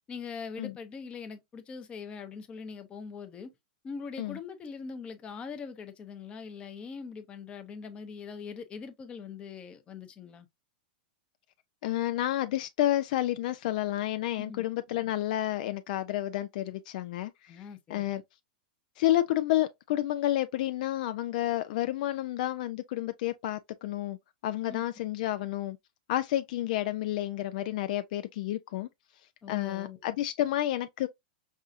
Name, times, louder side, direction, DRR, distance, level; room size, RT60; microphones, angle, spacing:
voice 1, 0.1-3.5 3.8-10.5 14.4-14.7 17.5-18.0 24.7-24.8 29.4-30.0, left 5 dB, 20° left, 0.7 m, -42 dB
voice 2, 11.8-17.6 17.9-18.2 19.0-24.2 24.4-25.8 26.1-28.9 29.5-31.1, left 14 dB, 60° left, 0.4 m, -30 dB
5.4 x 2.4 x 2.5 m
hypercardioid pair, 130°, 5 cm